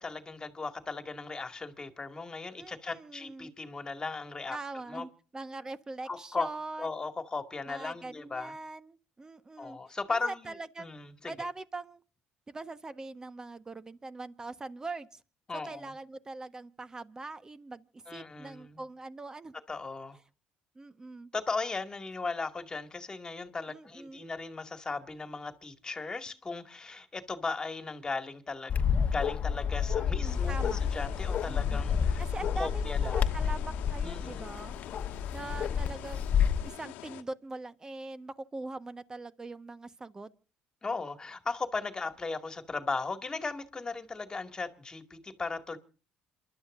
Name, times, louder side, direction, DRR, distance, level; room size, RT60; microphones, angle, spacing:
voice 1, 0.0-4.6 4.9-5.0 6.1-6.5 6.8-8.5 9.6-10.5 10.8-11.1 15.5-15.9 18.1-18.8 19.7-20.2 21.3-32.2 32.6-33.2 34.0-34.5 40.8-45.8, left 4 dB, 25° left, 2.2 m, -37 dB
voice 2, 2.6-3.5 4.5-7.1 7.7-10.9 11.2-12.0 12.5-15.2 15.6-19.5 20.7-21.3 23.7-24.2 29.9-30.8 31.5-31.8 32.2-34.7 35.3-36.3 36.6-40.3, right 3 dB, 20° right, 1.3 m, -42 dB
Bark, 28.7-36.7, left 7 dB, 50° left, 1.0 m, -30 dB
sound 1, 30.2-37.2, left 13 dB, 80° left, 1.3 m, -46 dB
27.5 x 12.0 x 2.6 m
supercardioid pair, 85°, 3 cm